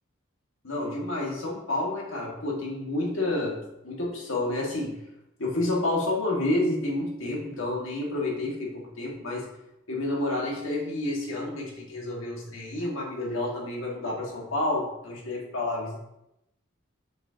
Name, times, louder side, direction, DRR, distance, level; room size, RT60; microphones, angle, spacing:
voice 1, 0.6-5.0 5.4-9.5 9.9-16.0, left 2 dB, 80° left, -3 dB, 1.9 m, -29 dB
6.6 x 6.2 x 2.9 m, 0.85 s
head